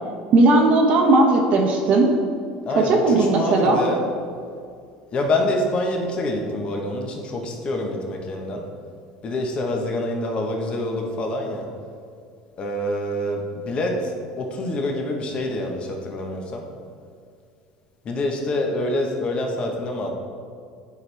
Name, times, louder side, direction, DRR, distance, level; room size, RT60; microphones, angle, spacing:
voice 1, 0.3-2.1 2.8-3.8, right 2 dB, 50° right, 1 dB, 0.9 m, -17 dB
voice 2, 2.7-4.1 5.1-8.7 9.2-11.7 12.6-16.7 18.0-20.1, left 1 dB, 40° left, 1 dB, 1.1 m, -26 dB
9.4 x 4.6 x 3.3 m, 2.3 s
supercardioid pair, 95°, 3 cm